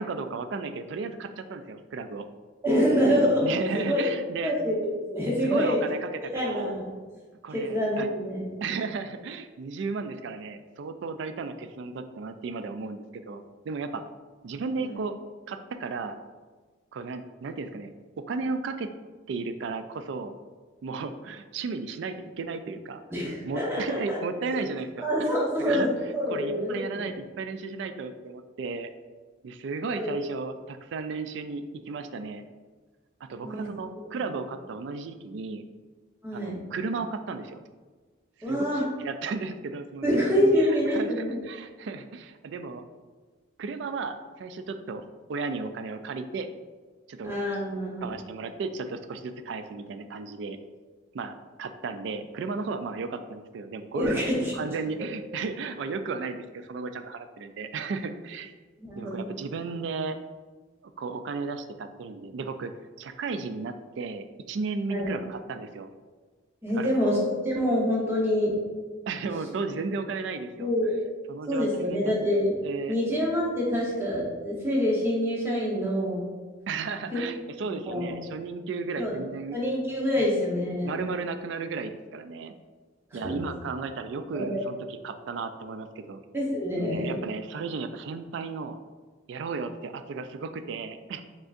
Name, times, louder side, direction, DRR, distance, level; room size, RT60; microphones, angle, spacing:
voice 1, 0.0-2.3 3.4-4.6 5.4-6.7 7.4-8.1 8.6-14.0 14.4-15.2 15.5-16.2 16.9-18.9 19.3-20.3 20.8-23.0 23.4-25.3 25.6-25.9 26.3-28.9 29.4-32.4 33.2-35.6 36.3-37.6 38.4-40.2 40.6-42.8 43.6-45.0 45.3-46.5 47.1-47.4 48.0-50.6 51.1-54.2 54.5-58.5 59.0-60.2 61.0-62.7 63.0-65.9 66.8-67.1 69.1-70.7 71.3-72.1 72.6-73.0 76.7-79.6 80.2-80.3 80.8-82.5 83.1-86.2 86.8-88.8 89.3-91.2, right 4 dB, 65° right, 9 dB, 0.3 m, -34 dB
voice 2, 2.6-4.0 4.4-5.9 6.3-6.9 7.5-8.5 14.8-14.9 23.1-24.2 25.0-27.1 29.9-30.1 33.4-33.7 36.2-36.6 38.4-38.8 40.0-41.4 47.2-48.1 53.9-54.5 58.8-59.2 64.9-65.1 66.6-67.2 67.4-68.5 69.2-69.3 70.6-70.9 71.5-72.5 72.9-76.3 77.1-77.2 77.9-78.1 79.0-79.2 79.5-81.0 83.1-83.4 84.3-84.6 86.3-87.2, equal, 10° right, -5 dB, 0.9 m, -26 dB
5.1 x 3.6 x 2.5 m, 1.4 s
head